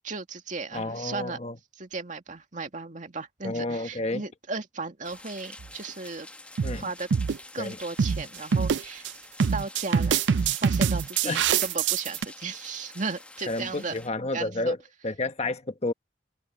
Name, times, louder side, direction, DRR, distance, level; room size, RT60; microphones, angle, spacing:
voice 1, 0.0-1.4 1.8-6.3 6.7-7.1 7.5-9.1 9.5-10.2 10.6-14.0 14.3-14.8, right 4 dB, 45° right, 2.2 m, -35 dB
voice 2, 0.7-1.6 3.4-4.2 6.6-6.9 7.6-7.8 11.2-11.4 13.5-14.8 15.0-15.9, left 2 dB, 40° left, 1.2 m, -30 dB
sound 1, 5.0-14.1, left 2 dB, 5° left, 1.0 m, -47 dB
sound 2, 5.6-5.9 6.6-6.8 7.1-7.4 8.0-8.2 8.5-9.1 9.4-12.2, right 6 dB, 90° right, 0.4 m, -24 dB
head